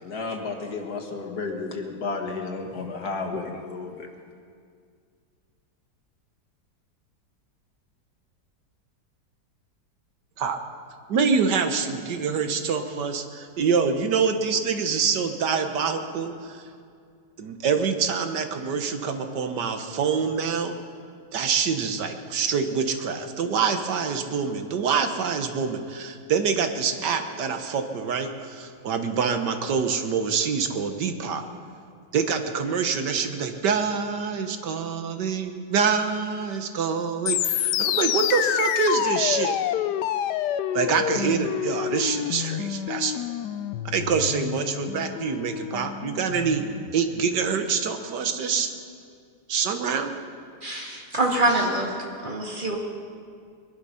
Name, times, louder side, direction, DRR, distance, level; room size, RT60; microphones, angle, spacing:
voice 1, 0.0-4.1, left 3 dB, 65° left, 2 dB, 2.1 m, -32 dB
voice 2, 11.1-16.6 17.4-20.7 21.3-31.4 32.1-39.6 40.7-43.2 43.9-46.6 46.9-48.7 49.5-50.2, right 6 dB, 85° right, 7 dB, 1.7 m, -26 dB
sound 1, 37.3-46.9, left 11 dB, 80° left, 1.2 m, -28 dB
voice 3, 50.6-51.9 52.2-52.8, right 2 dB, 30° right, -1 dB, 2.3 m, -24 dB
22.0 x 11.5 x 5.6 m, 2.2 s
omnidirectional pair, 1.8 m